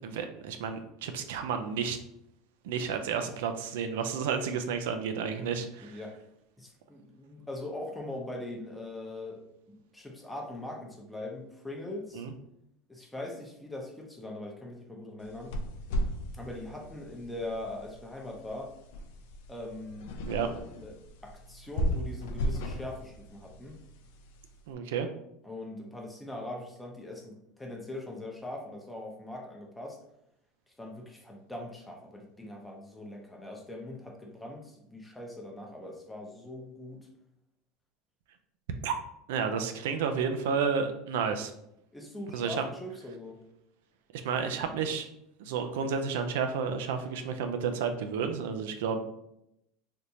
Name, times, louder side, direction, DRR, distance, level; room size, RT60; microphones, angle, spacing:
voice 1, 0.0-2.0 2.6-6.0 12.1-12.3 20.3-20.5 24.7-25.1 38.8-38.9 39.3-41.5 42.3-42.6 44.1-45.1 45.4-49.0, right 6 dB, 85° right, 7 dB, 0.4 m, -31 dB
voice 2, 5.8-6.2 6.6-9.4 9.9-12.2 12.9-15.5 16.3-18.7 19.5-20.1 20.3-20.5 20.8-21.0 21.2-23.8 25.4-30.0 30.8-37.0 41.9-43.4, left 1 dB, 5° left, -1 dB, 0.7 m, -41 dB
sound 1, 15.2-24.6, equal, 80° left, 0.5 m, -36 dB
3.4 x 2.5 x 2.8 m, 0.80 s
supercardioid pair, 130°, 0 cm